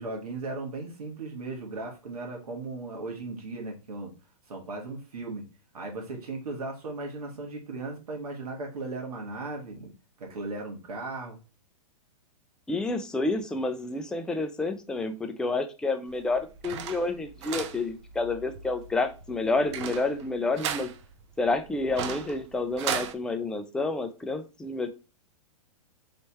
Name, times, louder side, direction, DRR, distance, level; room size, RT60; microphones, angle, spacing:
voice 1, 0.0-4.1 4.5-5.5 5.7-9.9 10.2-11.4, right 3 dB, 85° right, 0 dB, 1.5 m, -37 dB
voice 2, 12.7-20.9 21.4-24.9, left 3 dB, 5° left, 6 dB, 0.4 m, -29 dB
sound 1, 16.1-23.1, right 7 dB, 50° right, 0.6 m, -37 dB
3.3 x 3.2 x 4.2 m, 0.31 s
hypercardioid pair, 135°, 19 cm